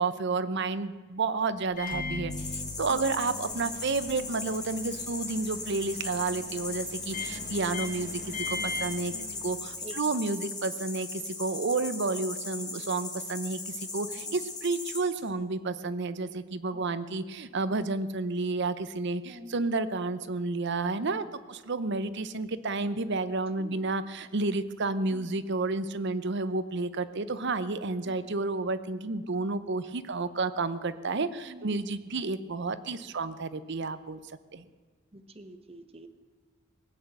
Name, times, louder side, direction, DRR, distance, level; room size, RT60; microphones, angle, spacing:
voice 1, 0.0-9.1 9.4-34.2 34.5-34.6, right 3 dB, 60° right, 13 dB, 0.8 m, -31 dB
Microwave oven, 1.7-9.9, left 3 dB, 45° left, 1.5 m, -39 dB
sound 1, 2.3-15.3, left 3 dB, 20° left, 2.8 m, -38 dB
voice 2, 9.1-9.4 9.8-10.2 14.2-14.4 16.7-16.9 19.3-19.5 21.1-21.3 23.6-23.8 25.1-25.3 31.5-31.8 35.1-36.1, right 1 dB, 30° right, 8 dB, 1.0 m, -47 dB
18.5 x 8.3 x 7.7 m, 1.5 s
head